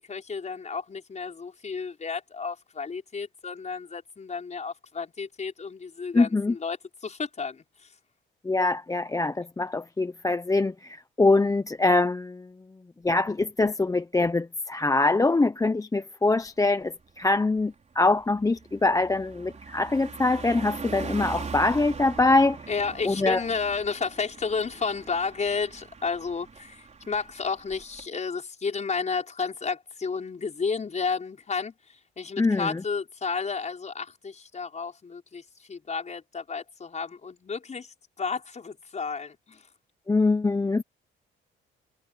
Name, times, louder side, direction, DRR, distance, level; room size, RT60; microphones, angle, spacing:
voice 1, 0.0-6.8 7.0-7.9 22.7-39.7, left 5 dB, 35° left, 5.6 m, -32 dB
voice 2, 6.1-6.5 8.4-12.5 13.0-22.6 23.0-23.4 32.4-32.8 40.1-40.8, left 3 dB, 15° left, 0.9 m, -24 dB
Car passing by, 16.5-16.7 17.1-28.1, right 5 dB, 35° right, 3.9 m, -41 dB
cardioid pair, 90°, 20 cm